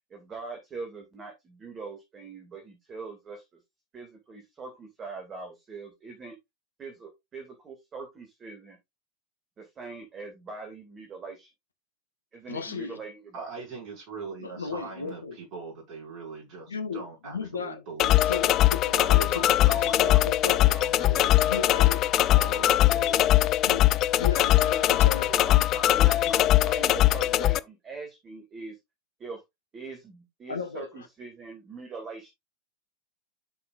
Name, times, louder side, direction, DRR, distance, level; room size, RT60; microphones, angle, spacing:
voice 1, 0.1-3.4 3.9-6.4 6.8-8.8 9.6-11.5 12.3-13.5 22.2-23.0 24.4-28.8 29.2-29.4 29.7-32.3, right 4 dB, 25° right, 2.3 m, -42 dB
voice 2, 12.5-13.0 14.4-15.4 16.7-17.8 18.3-19.8 20.0-20.8 21.5-22.0 23.6-23.9 24.2-25.3 30.5-31.1, left 5 dB, 75° left, 1.3 m, -35 dB
voice 3, 13.3-18.3 18.9-23.4 24.1-24.2, right 4 dB, 40° right, 5.6 m, -41 dB
sound 1, 18.0-27.6, left 14 dB, 35° left, 0.4 m, -21 dB
10.5 x 6.0 x 2.5 m
figure-of-eight pair, 90°, 0 cm